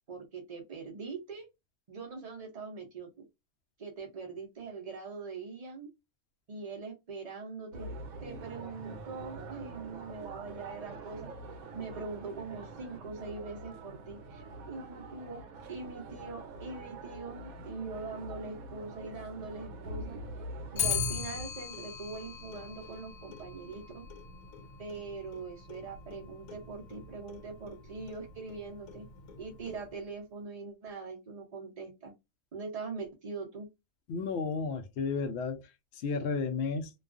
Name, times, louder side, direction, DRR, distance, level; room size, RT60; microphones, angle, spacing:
voice 1, 0.1-1.5 1.9-3.3 3.8-5.9 6.5-11.3 11.7-15.4 15.7-20.2 20.7-24.1 24.8-29.1 29.4-32.1 32.5-33.7, right 4 dB, 60° right, 0.4 m, -42 dB
sound 1, 7.7-20.9, right 2 dB, 85° right, 1.0 m, -45 dB
Clock, 20.8-30.1, left 6 dB, 85° left, 1.1 m, -40 dB
voice 2, 34.1-35.6 36.0-36.9, left 4 dB, 65° left, 0.7 m, -32 dB
2.3 x 2.3 x 2.4 m
omnidirectional pair, 1.5 m